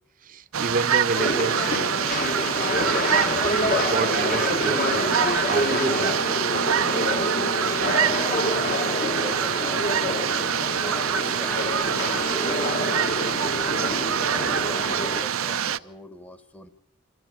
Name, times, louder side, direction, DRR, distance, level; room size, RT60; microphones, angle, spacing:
voice 1, 0.2-1.9 3.5-5.2 5.5-6.2, right 3 dB, 40° right, 0.8 m, -29 dB
sound 1, 0.5-15.8, right 8 dB, 90° right, 0.7 m, -25 dB
sound 2, 1.1-15.2, left 2 dB, 40° left, 1.2 m, -27 dB
voice 2, 7.7-8.6 9.0-9.8 10.8-12.2 13.1-14.0 14.3-16.7, right 1 dB, 5° left, 1.0 m, -41 dB
25.5 x 14.5 x 8.8 m
head